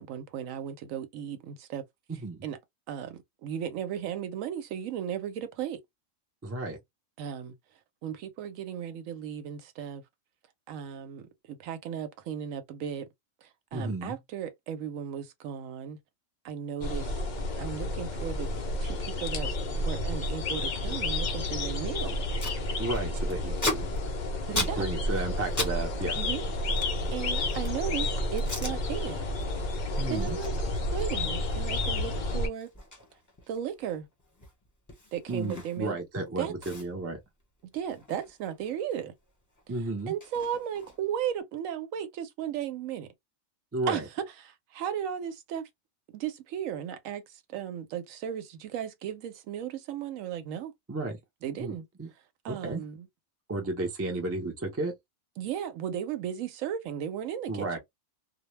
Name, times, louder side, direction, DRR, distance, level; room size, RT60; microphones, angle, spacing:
voice 1, 0.0-1.8 2.4-2.6 2.9-5.8 7.2-7.5 8.0-10.0 10.7-13.1 13.4-16.0 16.4-17.2 17.6-18.5 18.8-22.2 24.5-24.9 26.2-26.4 27.1-29.3 30.1-30.5 30.9-32.7 33.5-34.1 35.1-36.0 36.4-36.5 37.7-39.1 40.1-43.1 43.9-45.6 46.1-50.7 51.4-51.8 52.4-53.1 55.4-57.8, right 9 dB, 75° right, 0.9 m, -35 dB
voice 2, 2.1-2.4 6.4-6.8 13.7-14.2 22.8-23.9 24.6-26.2 30.0-30.4 35.3-37.2 39.7-40.1 43.7-44.0 50.9-51.2 51.6-52.1 52.5-52.8 53.5-54.9 57.5-57.8, right 2 dB, 20° right, 0.3 m, -33 dB
sound 1, 16.8-32.5, left 1 dB, 70° left, 0.4 m, -31 dB
Packing tape duct tape, 21.9-22.0 22.1-22.6 22.9-25.8 26.0-27.9 28.4-28.8 29.2-29.5 29.8-36.0 36.3-36.4 36.6-39.0 39.3-41.2, left 2 dB, 15° left, 0.7 m, -38 dB
2.2 x 2.1 x 3.0 m
omnidirectional pair, 1.4 m